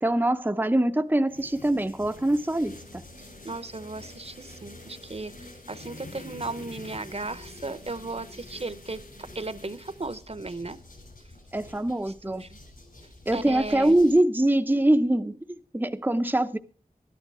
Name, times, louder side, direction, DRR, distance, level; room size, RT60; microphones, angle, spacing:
voice 1, 0.0-3.0 11.5-12.4 13.3-16.6, right 1 dB, 15° right, 7 dB, 0.7 m, -24 dB
sound 1, 1.3-14.1, left 2 dB, 70° left, 7.6 m, -47 dB
voice 2, 3.4-10.8 12.0-12.6 13.3-13.9, right 3 dB, 45° right, 14 dB, 1.0 m, -36 dB
12.5 x 12.0 x 4.8 m, 0.40 s
wide cardioid pair, 45°, 15 cm